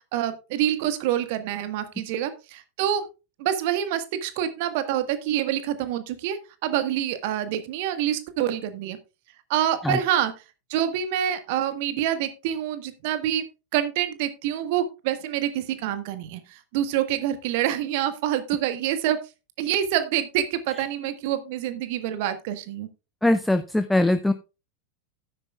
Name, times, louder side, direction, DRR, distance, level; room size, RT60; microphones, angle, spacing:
voice 1, 0.1-3.0 3.4-6.4 6.6-9.0 9.5-10.3 10.7-13.4 13.7-19.2 19.6-22.9, right 11 dB, 50° right, 11 dB, 1.5 m, -26 dB
voice 2, 23.2-24.3, left 1 dB, 5° left, 8 dB, 0.6 m, -21 dB
12.5 x 9.9 x 2.4 m, 0.29 s
figure-of-eight pair, 90°, 0 cm